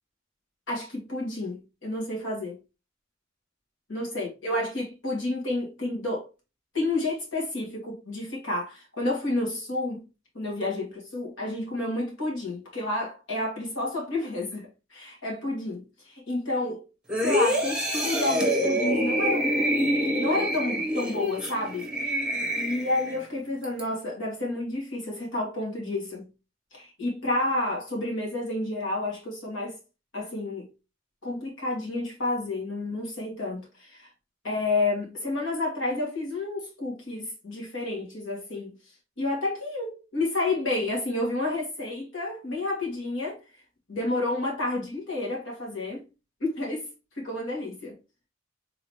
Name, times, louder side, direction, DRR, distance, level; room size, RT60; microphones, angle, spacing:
voice 1, 0.7-2.6 3.9-6.3 6.7-10.1 10.3-16.9 17.2-19.6 20.2-21.9 22.5-26.3 26.7-29.8 30.1-30.7 31.2-34.1 34.4-38.7 39.2-43.4 43.9-46.0 46.4-46.9 47.2-48.0, left 2 dB, 70° left, 2.4 m, -30 dB
sound 1, 17.1-23.2 23.6-23.8, equal, 5° right, 1.1 m, -26 dB
4.0 x 3.8 x 3.2 m
head